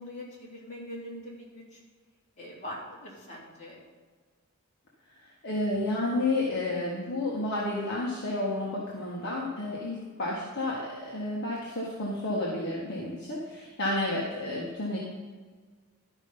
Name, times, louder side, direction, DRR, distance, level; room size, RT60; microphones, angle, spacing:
voice 1, 0.0-1.6 2.4-3.8, left 1 dB, 35° left, -5 dB, 3.3 m, -42 dB
voice 2, 5.4-15.0, left 2 dB, 55° left, -5 dB, 1.7 m, -31 dB
12.5 x 5.6 x 5.6 m, 1.5 s
head